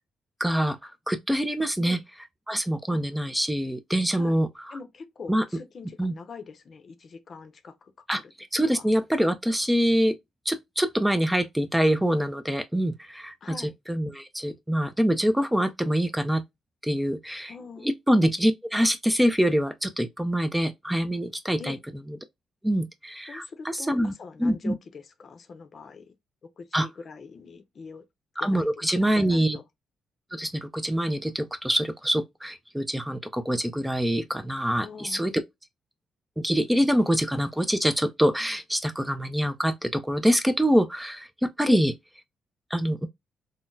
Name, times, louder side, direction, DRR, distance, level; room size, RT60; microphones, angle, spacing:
voice 1, 0.4-2.0 2.5-4.8 5.3-5.4 6.0-6.2 8.1-8.2 8.5-10.1 10.5-13.6 13.9-16.4 16.8-17.5 17.8-21.8 22.6-24.1 24.4-24.7 26.7-26.9 28.4-29.6 30.3-35.3 36.4-41.9 42.7-43.1, equal, 5° right, 0.4 m, -25 dB
voice 2, 4.7-8.2 8.6-8.9 13.4-13.7 17.5-17.9 21.6-21.8 23.3-26.1 26.6-28.0 28.4-29.6 34.8-35.3 41.7-41.9, left 4 dB, 45° left, 0.6 m, -42 dB
3.8 x 2.1 x 2.5 m
cardioid pair, 90°, 0 cm